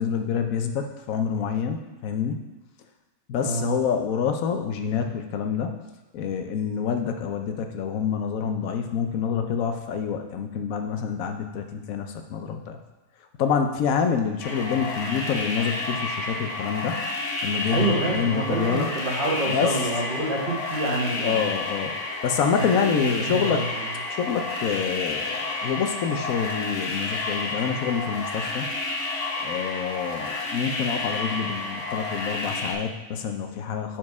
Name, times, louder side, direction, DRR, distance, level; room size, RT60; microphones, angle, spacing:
voice 1, 0.0-2.4 3.3-5.7 6.1-12.8 13.4-17.0 17.4-18.9 19.4-19.8 20.1-20.3 21.2-21.9 22.2-23.6 24.1-28.7 29.4-34.0, left 6 dB, 80° left, 5 dB, 1.1 m, -27 dB
voice 2, 3.4-3.8 17.7-21.4 23.0-23.8, right 2 dB, 40° right, -3 dB, 1.4 m, -27 dB
sound 1, 14.4-32.7, left 2 dB, 60° left, 1.4 m, -30 dB
7.1 x 4.5 x 4.7 m, 1.2 s
omnidirectional pair, 1.4 m